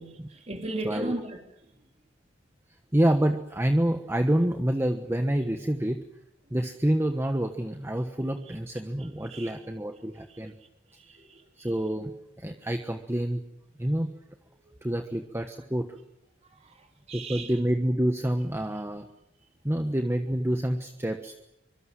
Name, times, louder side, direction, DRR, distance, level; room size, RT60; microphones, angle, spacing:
voice 1, 0.0-1.4 9.0-9.6 9.9-10.0 10.3-10.4 10.9-11.7 14.6-14.7 16.4-17.5, right 2 dB, 35° right, 3 dB, 3.4 m, -38 dB
voice 2, 2.9-6.0 6.5-10.5 11.6-13.4 13.8-14.1 14.8-15.9 17.1-19.1 19.6-21.3, right 1 dB, 15° right, 6 dB, 1.2 m, -27 dB
24.5 x 23.5 x 7.7 m, 0.86 s
head